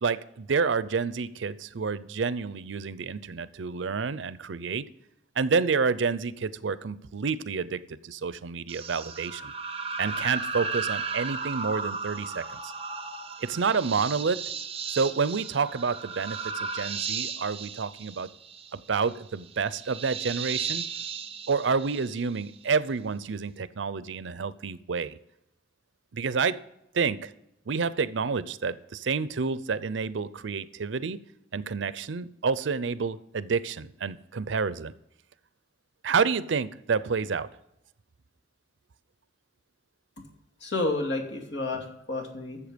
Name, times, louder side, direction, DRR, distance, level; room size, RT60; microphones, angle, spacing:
voice 1, 0.0-4.9 5.4-9.5 10.0-12.7 13.4-14.4 14.9-18.3 18.7-20.8 21.5-25.2 26.1-26.6 26.9-27.3 27.7-31.2 31.5-34.9 36.0-37.5, right 5 dB, 90° right, 16 dB, 0.6 m, -29 dB
sound 1, 8.7-22.6, right 5 dB, 35° right, 0.9 m, -35 dB
voice 2, 40.6-42.6, left 2 dB, 75° left, 1 dB, 2.3 m, -30 dB
13.0 x 7.1 x 5.1 m, 0.81 s
head